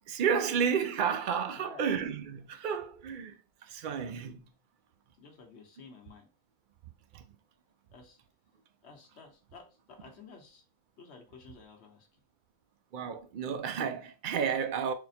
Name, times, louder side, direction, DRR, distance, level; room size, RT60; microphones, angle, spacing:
voice 1, 0.1-4.5 7.1-7.2 12.9-14.9, right 7 dB, 60° right, 0.5 m, -31 dB
voice 2, 1.5-1.9 5.2-6.3 7.9-8.2 8.8-10.6 11.0-12.1, left 5 dB, 60° left, 1.2 m, -52 dB
4.1 x 2.1 x 4.1 m
omnidirectional pair, 1.3 m